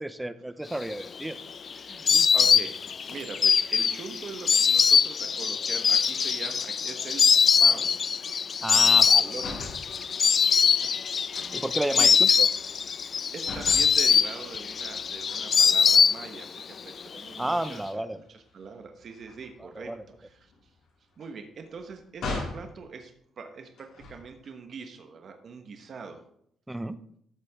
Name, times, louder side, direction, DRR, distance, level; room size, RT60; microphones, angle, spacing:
voice 1, 0.0-1.4 2.1-2.3 8.6-9.2 11.5-12.5 17.4-18.2 19.8-20.0 26.7-27.0, right 1 dB, 10° right, 13 dB, 0.7 m, -32 dB
Insect, 0.9-16.6 16.9-17.7, left 6 dB, 50° left, 0.3 m, -22 dB
voice 2, 1.7-7.3 7.6-8.0 8.7-9.7 10.1-10.2 10.8-10.9 11.4-12.2 13.0-18.0 18.3-19.9 20.2-20.7 21.2-26.2, right 5 dB, 55° right, 5 dB, 1.3 m, -42 dB
sound 1, 9.3-9.9 11.3-13.2 13.4-14.0 15.3-16.3 16.8-17.0 17.3-22.7 23.7-24.5, left 3 dB, 80° left, 4.7 m, -41 dB
13.5 x 6.8 x 3.6 m, 0.69 s
cardioid pair, 90°, 0 cm